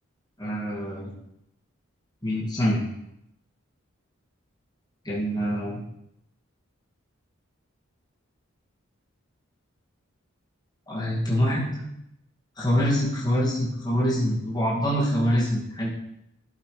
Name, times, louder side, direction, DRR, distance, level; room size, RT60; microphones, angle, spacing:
voice 1, 0.4-1.1 2.2-2.8 5.1-5.8 10.9-11.9 12.6-15.9, equal, 20° left, -6 dB, 2.2 m, -25 dB
11.5 x 8.1 x 3.3 m, 0.79 s
head